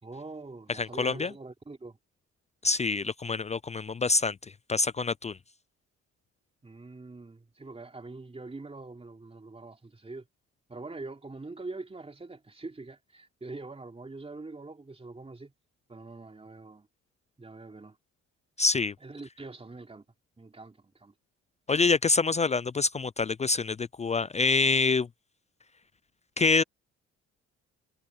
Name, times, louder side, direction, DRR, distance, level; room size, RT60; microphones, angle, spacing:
voice 1, 0.0-2.0 6.6-10.3 10.7-15.5 15.9-16.9 17.4-18.0 19.0-20.0 20.4-21.1, right 3 dB, 20° right, 3.4 m, -44 dB
voice 2, 0.7-1.3 2.6-4.4 4.7-5.4 18.6-18.9 21.7-25.1 26.4-26.6, left 4 dB, 25° left, 0.4 m, -26 dB
cardioid pair, 90°, 30 cm